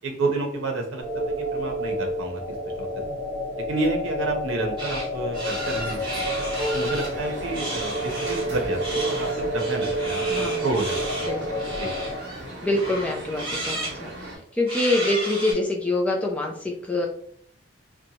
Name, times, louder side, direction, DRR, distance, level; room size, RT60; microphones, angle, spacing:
voice 1, 0.0-3.2 3.6-6.2 6.7-9.3 9.5-11.2 11.8-11.9, right 2 dB, 85° right, 2 dB, 0.6 m, -30 dB
sound 1, 1.0-12.2, equal, 25° left, 1.0 m, -29 dB
sound 2, 4.8-5.1 5.3-7.1 7.5-8.5 8.8-12.4 12.7-14.0 14.7-15.5, right 1 dB, 25° right, 1.2 m, -33 dB
sound 3, 5.5-14.4, right 1 dB, 60° right, 0.8 m, -36 dB
voice 2, 10.3-10.7 11.3-11.7 12.6-17.1, left 2 dB, 5° left, -1 dB, 0.4 m, -26 dB
2.7 x 2.2 x 2.7 m, 0.62 s
head